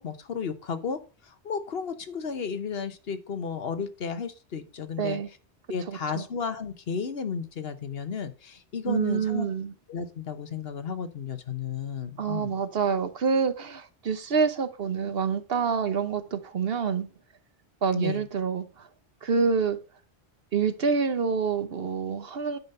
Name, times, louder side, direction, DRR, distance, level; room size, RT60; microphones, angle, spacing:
voice 1, 0.0-5.2 5.7-9.5 9.9-12.5 17.9-18.3, left 6 dB, 65° left, 1.2 m, -33 dB
voice 2, 5.0-5.3 5.9-6.2 8.9-9.7 12.2-17.1 17.8-18.9 19.2-19.8 20.5-22.6, right 6 dB, 60° right, 1.1 m, -27 dB
9.8 x 5.2 x 5.4 m
omnidirectional pair, 1.1 m